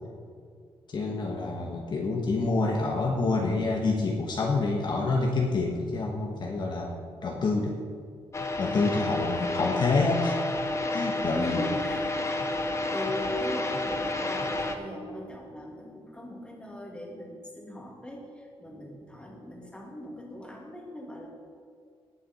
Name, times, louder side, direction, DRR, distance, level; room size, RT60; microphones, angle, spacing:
voice 1, 0.9-7.0 7.2-7.8 8.6-10.4 10.9-11.7, left 3 dB, 45° left, 0 dB, 1.3 m, -27 dB
sound 1, 8.3-14.8, left 2 dB, 30° left, 1.0 m, -30 dB
voice 2, 11.3-12.4 12.9-21.3, left 1 dB, 10° left, -1 dB, 2.4 m, -39 dB
18.5 x 7.0 x 4.3 m, 2.2 s
cardioid pair, 125°, 10 cm